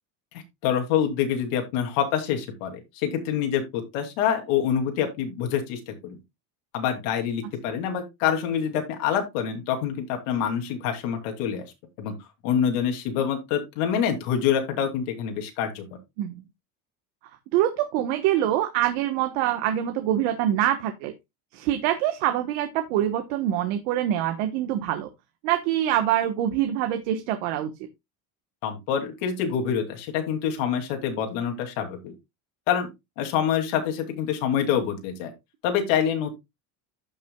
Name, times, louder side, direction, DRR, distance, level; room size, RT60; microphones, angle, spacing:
voice 1, 0.6-6.2 6.7-11.7 12.0-12.2 12.4-15.8 28.6-32.1 32.7-32.9 33.2-35.3 35.6-36.3, left 8 dB, 75° left, 4 dB, 2.8 m, -26 dB
voice 2, 17.5-21.1 21.5-25.1 25.4-27.7, right 12 dB, 70° right, 6 dB, 1.3 m, -25 dB
15.0 x 6.1 x 2.3 m, 0.22 s
cardioid pair, 180°, 39 cm